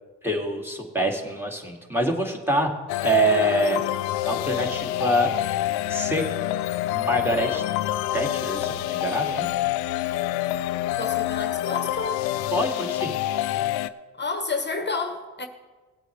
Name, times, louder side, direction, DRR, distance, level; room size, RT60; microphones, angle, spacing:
voice 1, 0.2-2.7 3.0-3.8 4.2-5.3 5.9-6.2 6.9-7.6 8.1-9.5 12.5-13.2, right 1 dB, 5° right, 2.5 m, -25 dB
sound 1, 2.9-13.9, left 14 dB, 85° left, 0.5 m, -27 dB
voice 2, 11.0-12.3 14.2-15.5, left 3 dB, 30° left, 1.2 m, -30 dB
18.0 x 8.3 x 3.4 m
supercardioid pair, 45°, 38 cm